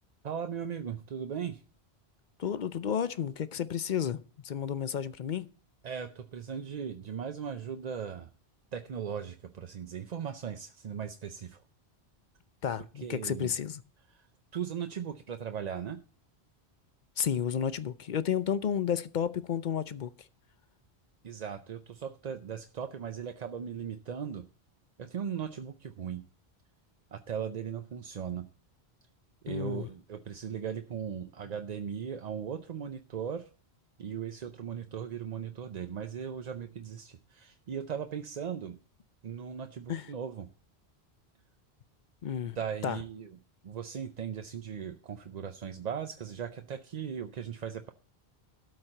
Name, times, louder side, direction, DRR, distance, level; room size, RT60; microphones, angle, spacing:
voice 1, 0.2-1.6 5.8-8.3 8.7-11.6 13.0-13.5 14.1-14.3 14.5-16.0 21.2-24.4 25.0-26.2 27.1-28.5 29.4-33.5 34.0-38.8 39.2-40.5 42.6-43.3 43.6-47.9, right 7 dB, 50° right, 0.6 m, -38 dB
voice 2, 2.4-5.5 12.6-13.8 17.2-20.3 29.5-29.9 39.9-40.1 42.2-42.6 42.8-43.0, left 8 dB, 55° left, 0.6 m, -32 dB
13.0 x 4.3 x 7.7 m
omnidirectional pair, 1.1 m